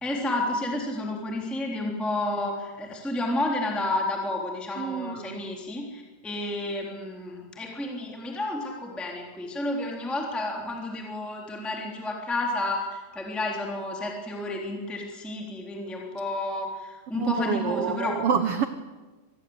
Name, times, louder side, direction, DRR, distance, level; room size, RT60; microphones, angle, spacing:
voice 1, 0.0-18.2, left 2 dB, ahead, 0 dB, 3.0 m, -31 dB
voice 2, 4.8-5.4 17.1-18.6, right 7 dB, 75° right, 10 dB, 1.3 m, -27 dB
26.0 x 19.5 x 8.1 m, 1.3 s
omnidirectional pair, 4.0 m